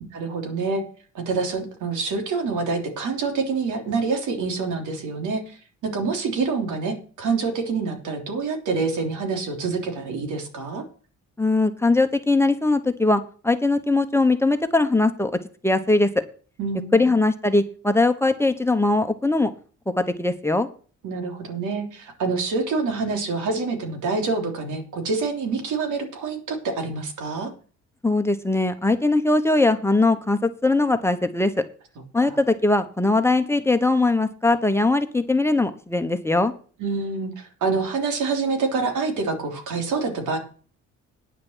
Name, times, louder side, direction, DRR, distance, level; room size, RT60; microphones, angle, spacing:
voice 1, 0.1-0.8 1.2-5.6 5.8-10.8 16.6-17.1 21.0-27.5 32.2-32.4 36.8-40.4, right 4 dB, 80° right, 4 dB, 3.4 m, -26 dB
voice 2, 11.4-15.3 15.6-16.1 16.9-19.5 20.0-20.7 28.0-31.5 32.1-36.5, left 2 dB, 10° left, 8 dB, 1.2 m, -20 dB
9.8 x 6.5 x 7.4 m, 0.40 s
cardioid pair, 90°, 30 cm